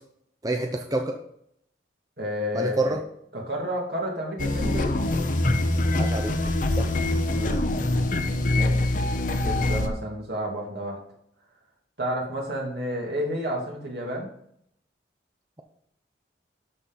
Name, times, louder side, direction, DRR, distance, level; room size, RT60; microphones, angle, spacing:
voice 1, 0.4-1.2 2.5-3.0 5.9-6.4 6.8-6.9, right 2 dB, 20° right, 3 dB, 0.6 m, -27 dB
voice 2, 2.2-2.9 3.3-5.0 7.3-7.6 8.5-9.0 9.4-11.0 12.0-14.3, equal, 60° right, -1 dB, 2.5 m, -31 dB
sound 1, 4.4-9.9, left 2 dB, 45° left, 0.8 m, -24 dB
12.5 x 4.2 x 5.4 m, 0.72 s
head